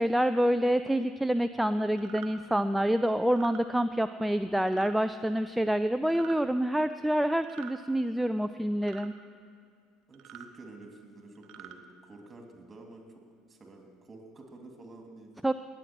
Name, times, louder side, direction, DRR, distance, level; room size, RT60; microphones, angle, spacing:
voice 1, 0.0-9.1 15.4-15.5, equal, 5° right, 10 dB, 0.4 m, -27 dB
sound 1, 2.0-2.3 3.2-3.6 4.7-5.0 6.0-6.4 7.4-7.8 8.8-9.1 10.1-10.5 11.3-11.8, right 11 dB, 55° right, 0.9 m, -47 dB
voice 2, 10.1-13.2 13.5-15.3, right 2 dB, 25° right, 2 dB, 2.8 m, -50 dB
19.0 x 7.7 x 6.2 m, 2.3 s
hypercardioid pair, 70°, 0 cm